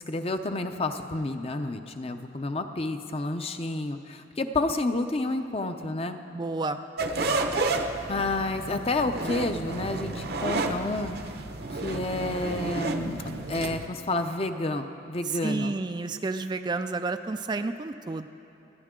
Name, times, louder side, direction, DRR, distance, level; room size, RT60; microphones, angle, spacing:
voice 1, 0.0-6.2 8.1-11.1 11.7-15.8, left 2 dB, 30° left, 7 dB, 0.6 m, -30 dB
voice 2, 6.3-6.9 15.3-18.3, right 3 dB, 25° right, 8 dB, 0.3 m, -30 dB
sound 1, 7.0-13.9, right 2 dB, 55° right, 0.8 m, -31 dB
27.5 x 10.5 x 3.8 m, 2.9 s
head